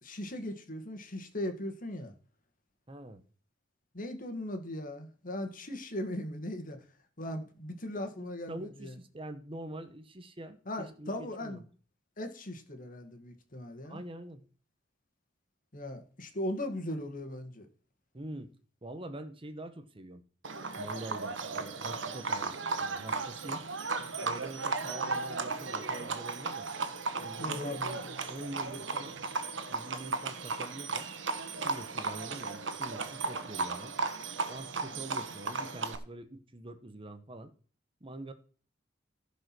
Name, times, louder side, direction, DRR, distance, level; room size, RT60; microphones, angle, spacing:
voice 1, 0.0-2.1 3.9-6.8 7.2-8.9 10.7-11.6 12.2-14.0 15.7-17.7 27.4-28.0, left 1 dB, 45° left, 7 dB, 2.1 m, -38 dB
voice 2, 2.9-3.2 8.2-11.6 13.8-14.4 18.1-18.5 18.8-20.2 20.8-23.7 24.2-26.7 27.2-27.8 28.3-29.2 29.7-31.1 31.6-33.9 34.5-37.5 38.0-38.3, right 1 dB, 30° right, 10 dB, 1.1 m, -44 dB
Livestock farm animals working animals, 20.4-36.0, right 4 dB, 85° right, 1.5 m, -35 dB
15.5 x 5.3 x 6.1 m, 0.41 s
head